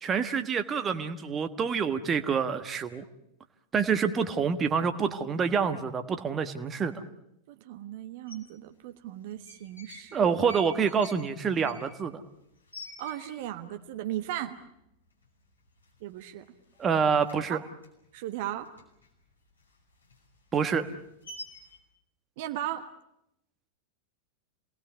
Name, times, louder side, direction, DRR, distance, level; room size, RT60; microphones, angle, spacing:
voice 1, 0.0-3.0 3.7-7.0 10.1-12.2 16.8-17.6 20.5-20.8, right 6 dB, 20° right, 8 dB, 1.4 m, -27 dB
voice 2, 7.5-10.3 13.0-14.6 16.0-16.5 17.5-17.6 18.1-18.7 22.4-22.9, right 13 dB, 50° right, 8 dB, 1.3 m, -36 dB
sound 1, 8.3-8.4 9.3-10.1 10.4-13.6 13.9-14.0 14.3-14.8 15.2-15.4 15.7-16.5 16.7-19.1 19.5-21.8, left 2 dB, 80° left, 5.7 m, -48 dB
28.0 x 19.0 x 8.2 m, 0.80 s
figure-of-eight pair, 90°, 0 cm